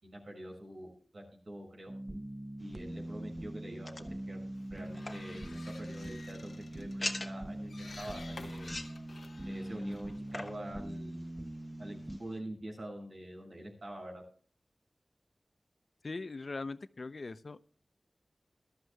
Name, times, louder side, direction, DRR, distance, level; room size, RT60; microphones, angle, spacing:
voice 1, 0.0-1.9 2.6-8.7 9.4-11.2 11.8-14.2, right 1 dB, 70° right, 0 dB, 6.6 m, -45 dB
sound 1, 1.9-12.2, right 1 dB, 25° right, 0.6 m, -42 dB
sound 2, 2.6-12.4, left 2 dB, 35° left, 1.2 m, -47 dB
sound 3, 4.6-11.1, left 3 dB, 85° left, 1.1 m, -53 dB
voice 2, 16.0-17.6, left 3 dB, 60° left, 13 dB, 0.6 m, -40 dB
21.0 x 12.5 x 2.3 m, 0.44 s
wide cardioid pair, 70°, 0 cm